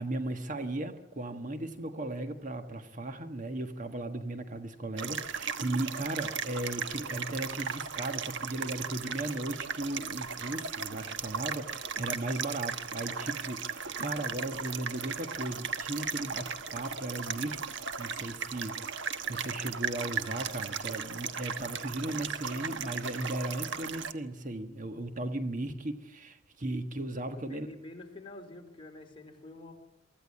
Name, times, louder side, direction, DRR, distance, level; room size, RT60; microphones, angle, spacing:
voice 1, 0.0-27.7, right 2 dB, 45° right, 7 dB, 1.5 m, -36 dB
sound 1, 5.0-24.1, right 6 dB, 70° right, 1.3 m, -37 dB
voice 2, 27.5-29.7, left 2 dB, 30° left, 3 dB, 4.1 m, -47 dB
24.0 x 15.0 x 9.8 m, 0.81 s
head